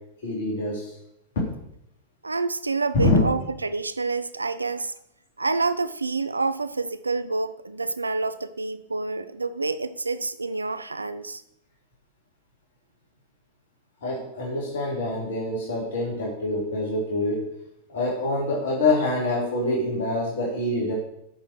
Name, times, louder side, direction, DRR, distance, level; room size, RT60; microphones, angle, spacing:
voice 1, 0.2-0.9 3.0-3.2 14.0-17.4 17.9-20.9, left 2 dB, 60° left, -2 dB, 3.3 m, -25 dB
voice 2, 2.2-4.9 5.4-11.4, right 3 dB, 80° right, 13 dB, 0.5 m, -28 dB
8.6 x 6.4 x 7.6 m, 0.79 s
figure-of-eight pair, 90°, 0 cm